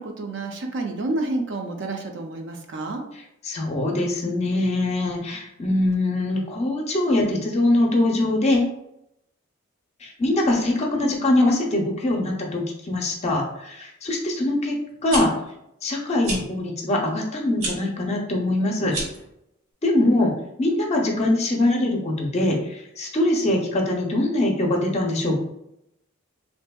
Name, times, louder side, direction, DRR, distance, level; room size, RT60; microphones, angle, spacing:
voice 1, 0.0-3.0, right 2 dB, 55° right, 3 dB, 0.4 m, -29 dB
voice 2, 3.4-8.7 10.0-14.8 15.0-15.3 15.8-18.9 19.8-20.3 20.6-25.4, left 1 dB, 30° left, 0 dB, 0.5 m, -22 dB
sound 1, 14.9-15.2 16.2-16.4 17.6-17.8 18.8-19.2, right 2 dB, 85° right, 1.1 m, -28 dB
3.4 x 2.6 x 2.2 m, 0.82 s
head